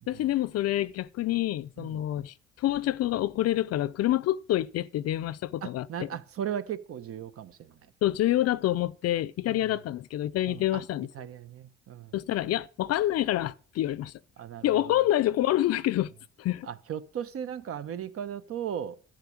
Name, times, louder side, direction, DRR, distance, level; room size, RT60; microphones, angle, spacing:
voice 1, 0.1-6.1 8.0-11.1 12.1-14.1 14.6-16.1 16.4-16.7, left 14 dB, 55° left, 0.6 m, -27 dB
voice 2, 5.6-7.8 9.5-9.7 10.5-10.8 11.1-12.2 14.4-15.1 16.6-19.0, right 9 dB, 50° right, 1.0 m, -37 dB
12.0 x 6.5 x 8.6 m
cardioid pair, 140°, 29 cm